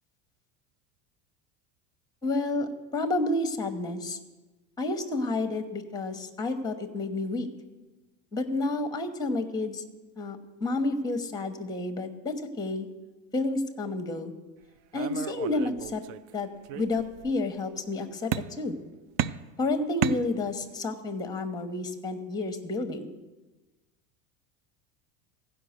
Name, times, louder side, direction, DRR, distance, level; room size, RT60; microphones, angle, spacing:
voice 1, 2.2-4.2 4.8-7.5 8.3-9.8 10.2-12.9 13.3-14.3 14.9-16.0 16.3-16.5 16.8-18.8 19.6-23.1, left 2 dB, 10° left, 8 dB, 1.0 m, -30 dB
sound 1, 14.9-16.3 16.6-17.4 18.3-18.8 19.2-20.8, right 11 dB, 60° right, 0.5 m, -33 dB
15.5 x 5.1 x 6.5 m, 1.2 s
supercardioid pair, 105°, 43 cm